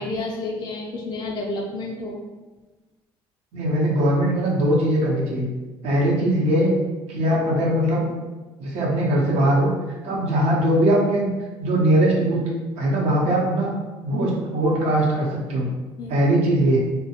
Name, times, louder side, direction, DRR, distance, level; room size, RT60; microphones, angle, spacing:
voice 1, 0.0-2.2 10.1-10.2 16.0-16.1, left 2 dB, 35° left, -1 dB, 0.4 m, -30 dB
voice 2, 3.5-5.5 5.8-6.7 7.1-8.1 8.6-9.7 10.0-11.3 11.6-12.4 12.8-13.7 14.0-15.7 16.1-16.8, right 1 dB, 65° right, -3 dB, 0.8 m, -20 dB
2.3 x 2.1 x 2.8 m, 1.2 s
supercardioid pair, 75°, 12 cm